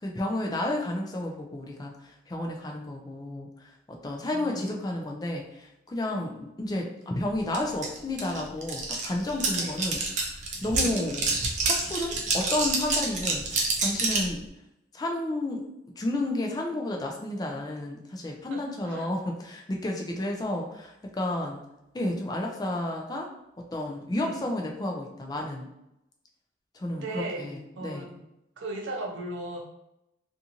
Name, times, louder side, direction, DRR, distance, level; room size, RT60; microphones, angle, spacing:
voice 1, 0.0-10.0 10.6-11.3 11.6-13.5 13.8-14.4 14.9-15.7 16.0-21.6 21.9-23.3 23.7-25.7 26.7-28.1, left 1 dB, 20° left, 1 dB, 0.3 m, -31 dB
voice 2, 4.3-4.8 9.6-9.8 10.8-11.0 18.5-19.1 24.2-24.3 27.0-28.2 28.6-29.6, right 2 dB, 85° right, 1 dB, 0.6 m, -37 dB
sound 1, 7.5-7.6 7.8-14.3, right 3 dB, 40° right, 0.5 m, -28 dB
2.5 x 2.5 x 2.8 m, 0.84 s
head